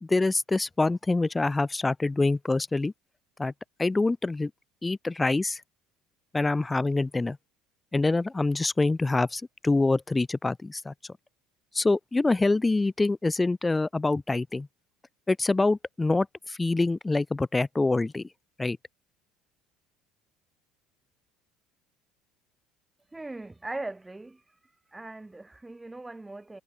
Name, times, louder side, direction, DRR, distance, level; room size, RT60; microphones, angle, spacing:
voice 1, 0.0-2.9 3.4-3.5 3.8-4.5 4.8-5.6 6.3-7.4 7.9-10.9 11.7-14.7 15.3-18.3 18.6-18.8, left 3 dB, 15° left, 0.9 m, -25 dB
voice 2, 23.1-24.4 24.9-26.6, right 2 dB, 10° right, 0.6 m, -39 dB
supercardioid pair, 115°, 0 cm